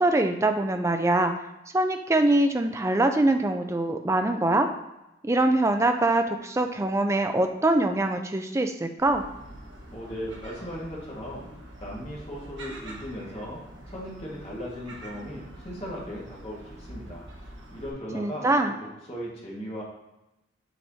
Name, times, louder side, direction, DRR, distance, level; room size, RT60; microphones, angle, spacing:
voice 1, 0.0-1.3 1.7-4.7 5.2-9.2 18.1-18.7, right 2 dB, 15° right, 6 dB, 0.3 m, -23 dB
Gull seagull, 9.0-17.9, right 1 dB, 70° right, 1.2 m, -45 dB
voice 2, 9.9-11.5 11.8-13.6 13.9-18.5 18.8-19.8, equal, 30° left, -5 dB, 1.7 m, -37 dB
7.1 x 4.8 x 2.8 m, 0.95 s
head